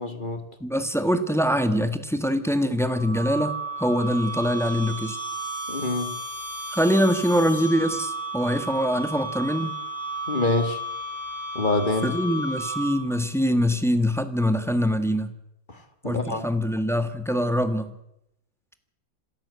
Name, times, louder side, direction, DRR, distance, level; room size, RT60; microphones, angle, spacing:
voice 1, 0.0-0.4 5.7-6.2 10.3-10.8 11.5-12.1 15.7-15.8 16.0-16.5, left 2 dB, 25° left, 9 dB, 2.0 m, -26 dB
voice 2, 0.6-5.2 6.7-9.8 12.0-15.3 16.0-17.9, equal, ahead, 9 dB, 1.3 m, -24 dB
sound 1, 2.8-13.2, right 1 dB, 55° right, 6.7 m, -33 dB
27.0 x 13.5 x 8.2 m, 0.83 s
omnidirectional pair, 2.1 m